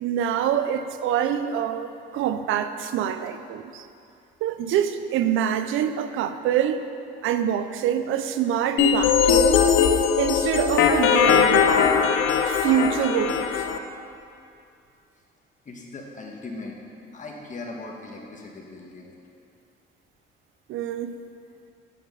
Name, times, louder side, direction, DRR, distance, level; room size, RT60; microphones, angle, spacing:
voice 1, 0.0-3.9 4.4-6.9 7.2-9.7 10.2-11.8 12.4-13.7 20.7-21.2, right 9 dB, 85° right, 10 dB, 0.5 m, -25 dB
sound 1, 8.8-13.8, left 7 dB, 80° left, 0.5 m, -20 dB
voice 2, 15.6-16.8 17.1-19.1, left 2 dB, 40° left, 0 dB, 1.3 m, -39 dB
7.2 x 5.7 x 5.6 m, 2.6 s
cardioid pair, 90°, 20 cm